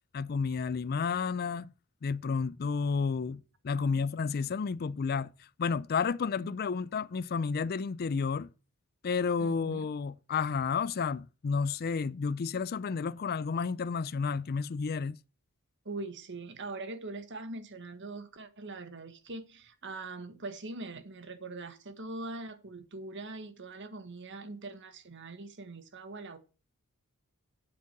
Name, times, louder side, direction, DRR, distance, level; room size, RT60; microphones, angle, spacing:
voice 1, 0.1-1.7 2.0-8.5 9.0-15.2, left 5 dB, 45° left, 0.4 m, -31 dB
voice 2, 9.4-9.9 15.8-26.4, right 2 dB, 55° right, 1.4 m, -42 dB
8.4 x 7.4 x 6.0 m
head